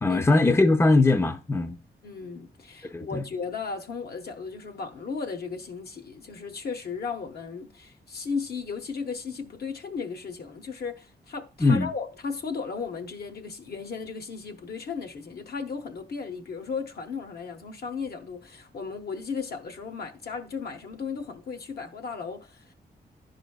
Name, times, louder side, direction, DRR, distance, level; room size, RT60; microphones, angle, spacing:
voice 1, 0.0-1.8 2.9-3.2 11.6-11.9, left 3 dB, 15° left, 0.5 m, -21 dB
voice 2, 2.0-22.7, left 5 dB, 65° left, 0.9 m, -35 dB
10.0 x 5.0 x 2.3 m
cardioid pair, 70°, 17 cm